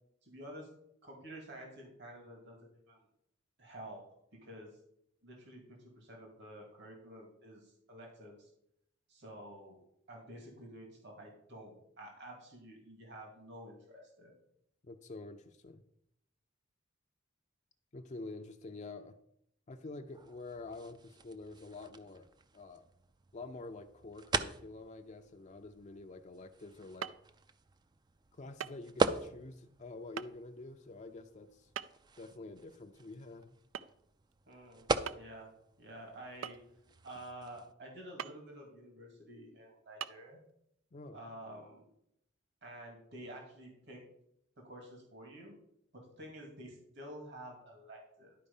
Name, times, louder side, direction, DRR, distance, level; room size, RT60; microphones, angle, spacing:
voice 1, 0.2-0.7 1.0-3.0 3.6-4.0 4.3-4.7 5.2-8.5 9.1-9.8 10.1-14.4 34.5-35.5 35.8-36.6 37.0-40.4 41.1-41.8 42.6-44.0 44.6-45.6 45.9-48.4, right 1 dB, 60° right, 1 dB, 2.4 m, -50 dB
voice 2, 14.8-15.8 17.9-19.2 19.7-22.3 22.5-22.9 23.3-27.1 28.3-31.7 32.2-33.5 40.9-41.2, left 2 dB, 35° left, 5 dB, 0.5 m, -47 dB
sound 1, 20.1-37.7, right 3 dB, 20° right, 0.4 m, -41 dB
sound 2, 27.0-27.3 28.6-28.8 29.1-29.2 30.2-30.3 31.8-32.1 33.7-34.0 34.3-34.4 35.1-35.4 36.4-36.9 38.2-38.4 39.0-39.1 40.0-40.1, right 8 dB, 85° right, 0.4 m, -41 dB
11.0 x 4.6 x 5.4 m, 0.73 s
head